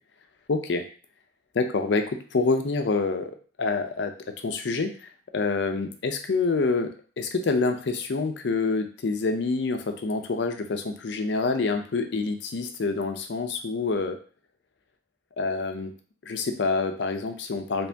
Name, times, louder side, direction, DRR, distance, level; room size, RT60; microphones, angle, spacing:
voice 1, 0.5-0.8 1.5-3.3 3.6-6.9 7.2-14.2 15.4-15.9 16.2-17.9, left 3 dB, 70° left, 6 dB, 0.5 m, -27 dB
2.9 x 2.7 x 3.3 m, 0.40 s
head